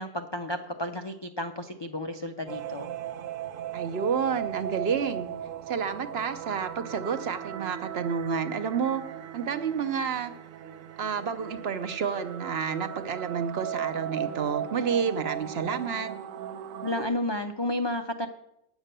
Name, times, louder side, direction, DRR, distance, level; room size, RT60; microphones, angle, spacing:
voice 1, 0.0-2.9 16.8-18.3, left 1 dB, 45° left, 6 dB, 0.3 m, -32 dB
sound 1, 2.5-17.1, right 10 dB, 85° right, 1.1 m, -37 dB
voice 2, 3.7-5.3 5.7-9.0 9.3-10.3 11.0-16.1, right 6 dB, 60° right, 10 dB, 0.9 m, -30 dB
8.7 x 8.1 x 6.7 m, 0.86 s
omnidirectional pair, 1.3 m